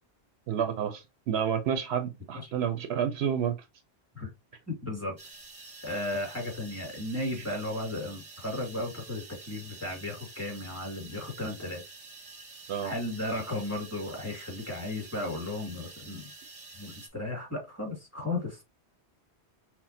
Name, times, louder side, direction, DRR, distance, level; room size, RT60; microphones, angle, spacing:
voice 1, 0.5-3.5 7.4-7.5 12.7-12.9, right 8 dB, 75° right, 0.8 m, -30 dB
voice 2, 4.7-5.2 5.8-11.8 12.8-16.3 16.8-18.6, left 2 dB, 15° left, 1.9 m, -35 dB
sound 1, 5.2-17.1, right 3 dB, 35° right, 0.8 m, -48 dB
5.8 x 2.1 x 2.6 m
omnidirectional pair, 1.1 m